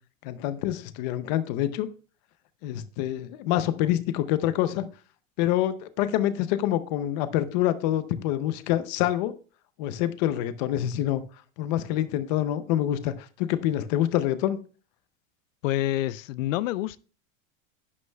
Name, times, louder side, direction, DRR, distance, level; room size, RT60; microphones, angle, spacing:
voice 1, 0.2-1.9 2.6-4.9 5.4-9.3 9.8-11.2 11.6-14.6, left 12 dB, 35° left, 0.6 m, -26 dB
voice 2, 15.6-17.0, left 14 dB, 80° left, 0.5 m, -27 dB
11.0 x 9.5 x 2.3 m
supercardioid pair, 175°, 39 cm